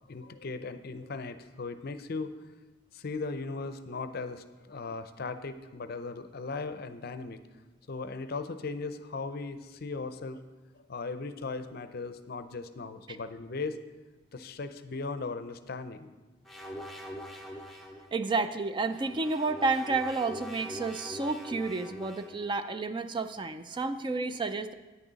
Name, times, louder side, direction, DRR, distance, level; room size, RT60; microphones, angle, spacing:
voice 1, 0.1-2.3 2.9-7.4 7.9-10.4 10.9-13.8 14.3-16.1, left 3 dB, 50° left, 11 dB, 0.5 m, -38 dB
sound 1, 16.5-18.1 18.8-22.5, equal, ahead, 0.7 m, -43 dB
voice 2, 18.1-24.7, right 3 dB, 25° right, 10 dB, 0.3 m, -31 dB
9.9 x 9.3 x 4.0 m, 1.2 s
head